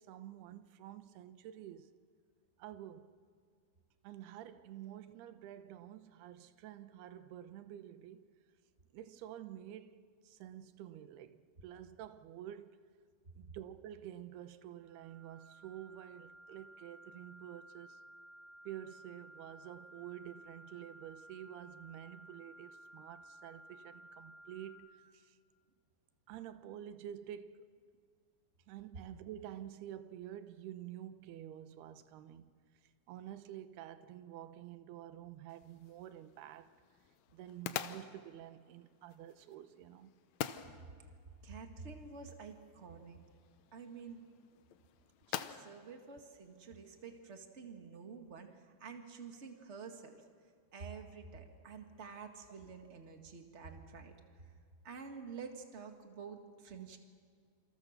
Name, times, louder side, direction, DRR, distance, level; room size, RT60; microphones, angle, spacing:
voice 1, 0.0-2.0 2.6-3.1 4.0-8.3 8.9-12.8 13.4-18.0 18.7-25.4 26.3-27.7 28.7-32.5 33.1-36.7 37.3-40.1, right 11 dB, 85° right, 3.0 m, -49 dB
sound 1, 14.8-24.7, right 1 dB, 60° right, 6.0 m, -56 dB
sound 2, 35.5-47.2, left 10 dB, 80° left, 1.6 m, -48 dB
voice 2, 41.4-43.2 43.7-44.2 45.3-50.2 50.7-54.5 54.8-57.0, right 5 dB, 40° right, 1.0 m, -49 dB
28.0 x 27.5 x 6.7 m
omnidirectional pair, 4.5 m